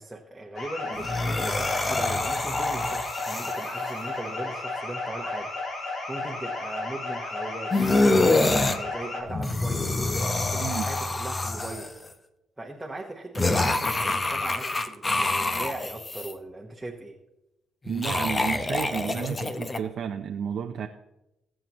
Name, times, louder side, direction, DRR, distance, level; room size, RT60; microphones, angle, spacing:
voice 1, 0.0-11.9 12.6-17.2, right 2 dB, 10° right, -1 dB, 1.2 m, -39 dB
sound 1, 0.5-9.2, left 2 dB, 60° left, 3.4 m, -33 dB
sound 2, 0.9-4.0 7.7-8.8 9.3-12.1 13.3-16.3 17.8-19.8, left 2 dB, 25° left, 0.9 m, -26 dB
voice 2, 17.9-20.9, right 8 dB, 65° right, 4 dB, 0.6 m, -32 dB
22.0 x 7.7 x 3.1 m, 0.96 s
cardioid pair, 95°, 0 cm